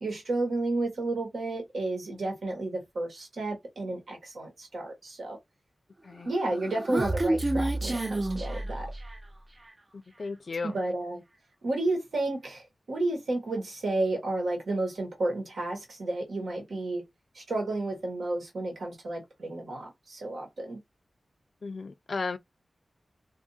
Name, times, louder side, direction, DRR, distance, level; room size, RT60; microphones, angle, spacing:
voice 1, 0.0-5.4 6.2-8.9 10.6-11.2 11.6-17.0 17.3-20.8, right 2 dB, 90° right, 1.2 m, -32 dB
Human voice, 6.3-9.3, right 2 dB, 30° right, 0.4 m, -29 dB
voice 2, 10.2-10.8 21.6-22.4, left 4 dB, 65° left, 0.3 m, -34 dB
2.5 x 2.4 x 2.6 m
wide cardioid pair, 70°, 0 cm